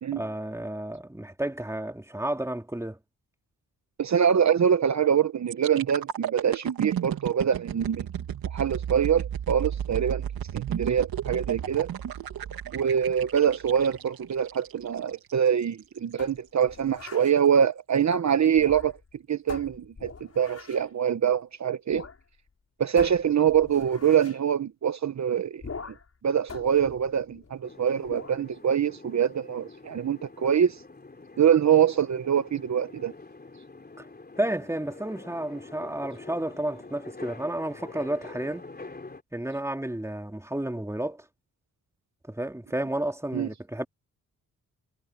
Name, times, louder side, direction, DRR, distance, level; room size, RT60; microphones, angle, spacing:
voice 1, 0.1-3.0 34.0-34.1 34.4-38.7 39.3-41.3 42.3-43.8, right 1 dB, 10° right, 2.5 m, -31 dB
voice 2, 4.0-8.1 8.5-10.2 10.5-11.9 12.7-19.0 19.3-22.0 22.8-25.6 26.2-30.8 31.4-33.1 43.3-43.5, right 8 dB, 50° right, 1.0 m, -24 dB
sound 1, 5.5-15.3 15.8-16.0, right 9 dB, 85° right, 2.5 m, -33 dB
sound 2, 16.2-17.4 18.5-19.1 19.5-20.9 21.9-22.2 22.5-22.6 23.0-24.4 25.6-26.1 26.5-27.6 28.0-28.4, left 4 dB, 45° left, 6.4 m, -42 dB
sound 3, 27.6-39.2, left 3 dB, 25° left, 3.7 m, -46 dB
cardioid pair, 70°, 35 cm